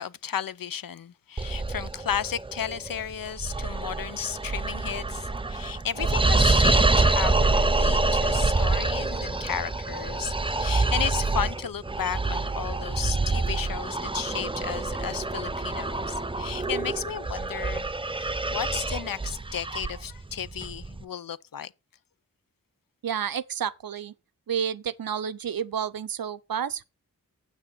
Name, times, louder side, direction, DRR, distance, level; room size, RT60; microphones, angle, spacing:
voice 1, 0.0-21.7, left 8 dB, 75° left, 0.6 m, -34 dB
sound 1, 1.4-21.0, right 3 dB, 15° right, 0.6 m, -26 dB
voice 2, 23.0-24.1 24.5-26.8, right 8 dB, 85° right, 0.6 m, -30 dB
7.9 x 6.3 x 5.9 m
cardioid pair, 45°, 34 cm